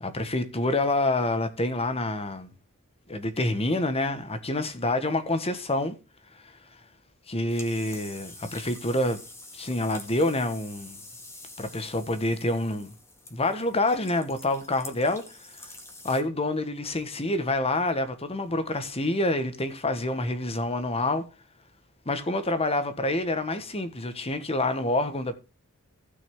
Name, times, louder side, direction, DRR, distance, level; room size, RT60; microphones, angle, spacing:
voice 1, 0.0-2.5 3.1-6.0 6.4-6.5 7.3-9.2 9.5-11.0 11.6-12.9 13.3-15.4 16.0-21.3 22.0-25.3, left 2 dB, 30° left, 1.4 m, -27 dB
sound 1, 7.5-16.2, left 2 dB, 15° left, 2.2 m, -46 dB
15.5 x 6.2 x 3.7 m
head